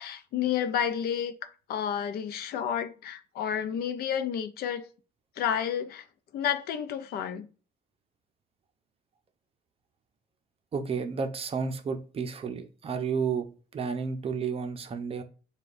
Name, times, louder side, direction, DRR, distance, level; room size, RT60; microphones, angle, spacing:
voice 1, 0.0-4.8 5.4-6.0 6.3-7.5, left 9 dB, 65° left, 0.6 m, -30 dB
voice 2, 10.7-15.2, right 5 dB, 35° right, 0.6 m, -32 dB
6.9 x 2.3 x 2.5 m
cardioid pair, 110°, 17 cm